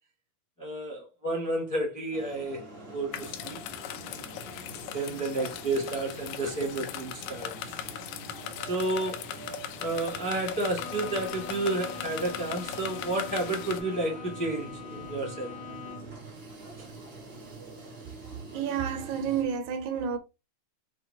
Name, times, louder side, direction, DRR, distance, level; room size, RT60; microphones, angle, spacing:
voice 1, 0.6-2.6 2.9-3.6 4.9-7.5 8.7-9.3 9.8-15.5, right 2 dB, 15° left, 0.7 m, -31 dB
sound 1, 2.1-19.4, right 3 dB, 60° right, 0.6 m, -45 dB
sound 2, 3.1-13.8, left 10 dB, 85° left, 2.0 m, -39 dB
Bowed string instrument, 10.7-16.3, left 7 dB, 65° left, 1.1 m, -43 dB
voice 2, 18.5-20.2, right 7 dB, 80° right, 1.9 m, -30 dB
5.7 x 2.9 x 2.7 m
omnidirectional pair, 3.4 m